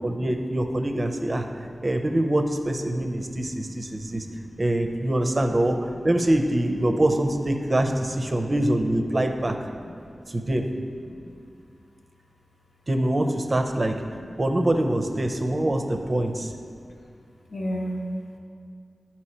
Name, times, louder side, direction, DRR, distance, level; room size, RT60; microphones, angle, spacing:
voice 1, 0.0-1.5 1.8-4.3 4.6-9.6 10.3-10.7 12.9-14.0 14.4-16.5, right 1 dB, 40° right, 5 dB, 0.5 m, -24 dB
voice 2, 3.9-4.6 9.9-10.3 11.1-11.3 14.3-14.4 17.5-18.0, equal, 70° left, -1 dB, 1.0 m, -35 dB
9.9 x 4.3 x 4.3 m, 2.2 s
wide cardioid pair, 85°, 0 cm